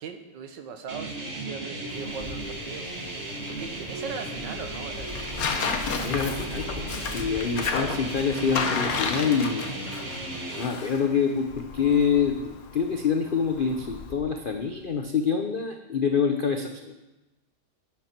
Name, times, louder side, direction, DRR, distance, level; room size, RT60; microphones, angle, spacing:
voice 1, 0.0-2.9 3.3-5.4, right 6 dB, 85° right, 7 dB, 1.7 m, -40 dB
sound 1, 0.9-10.7, right 2 dB, 40° right, 1.8 m, -35 dB
Tearing, 1.9-14.1, left 5 dB, 60° left, 1.4 m, -34 dB
Wind, 1.9-15.0, left 3 dB, 40° left, 0.8 m, -44 dB
voice 2, 6.0-9.6 10.6-16.9, left 6 dB, 80° left, 5 dB, 0.4 m, -26 dB
11.0 x 9.4 x 4.4 m, 1.0 s
omnidirectional pair, 1.9 m